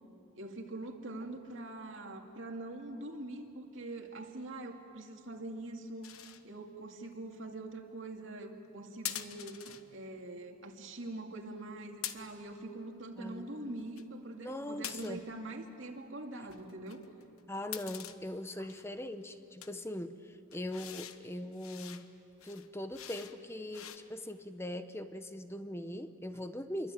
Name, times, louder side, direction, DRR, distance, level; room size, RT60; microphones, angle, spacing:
voice 1, 0.4-17.0, right 2 dB, 65° right, 3 dB, 2.4 m, -44 dB
sound 1, 6.0-6.4 9.0-9.8 12.0-12.5 13.7-14.0 14.8-15.3 16.5-18.2 18.7-19.0 19.6-19.7 20.5-21.2 21.5-22.1 22.4-23.4 23.7-24.0, left 11 dB, 90° left, 1.2 m, -44 dB
voice 2, 13.2-13.5 14.4-15.2 17.5-22.0 22.4-26.9, left 1 dB, 10° left, 10 dB, 0.9 m, -41 dB
28.0 x 23.5 x 9.2 m, 2.7 s
head